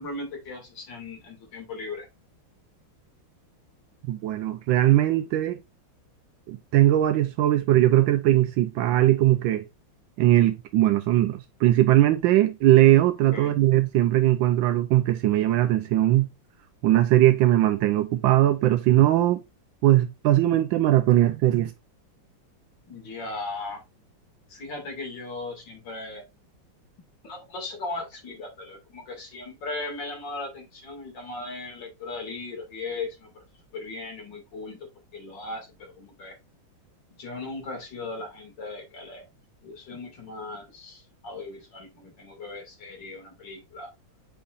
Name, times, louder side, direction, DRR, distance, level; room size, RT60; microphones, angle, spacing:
voice 1, 0.0-2.1 13.3-13.6 22.9-23.8 24.5-26.2 27.2-33.4 33.7-34.8 35.1-35.7 36.0-36.3 37.2-39.3 39.6-43.9, left 3 dB, 70° left, 3.0 m, -37 dB
voice 2, 4.1-5.6 6.5-9.6 10.2-16.3 16.8-19.4 19.8-21.7, right 14 dB, 80° right, 1.3 m, -20 dB
8.5 x 5.4 x 2.5 m
omnidirectional pair, 2.1 m